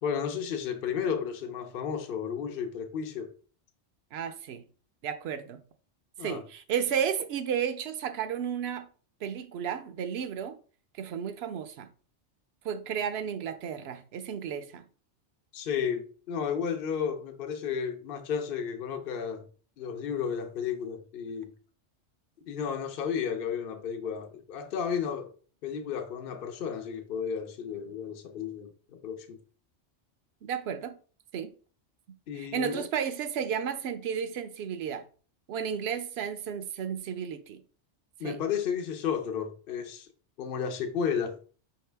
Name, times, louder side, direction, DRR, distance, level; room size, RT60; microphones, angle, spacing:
voice 1, 0.0-3.3 6.2-6.4 15.5-19.4 19.8-21.5 22.5-25.3 25.6-29.4 32.3-32.9 38.2-40.1 40.4-41.3, left 7 dB, 55° left, 0.8 m, -33 dB
voice 2, 4.1-4.6 5.0-5.6 6.2-8.9 9.2-10.6 11.0-11.9 12.6-14.8 30.4-31.0 31.3-31.5 32.3-35.1 35.5-37.6 38.2-38.4, right 8 dB, 65° right, 0.8 m, -33 dB
5.2 x 2.8 x 3.3 m
omnidirectional pair, 1.2 m